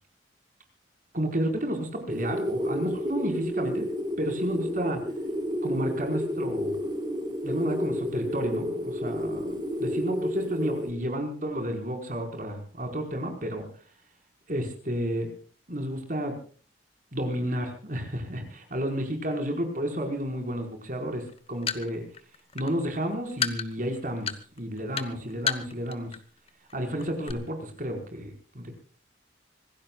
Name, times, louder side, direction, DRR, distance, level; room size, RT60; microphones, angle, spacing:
voice 1, 1.1-3.9 4.2-5.0 5.6-6.8 7.4-13.6 14.5-15.3 15.7-16.3 17.1-21.2 21.5-22.0 22.5-26.1 26.7-28.8, equal, 45° right, 4 dB, 5.0 m, -31 dB
sound 1, 2.1-10.9, equal, 25° right, 2.6 m, -31 dB
sound 2, 21.3-26.2 26.5-26.7 27.0-27.3, left 7 dB, 30° left, 1.2 m, -31 dB
26.0 x 17.5 x 2.4 m, 0.41 s
head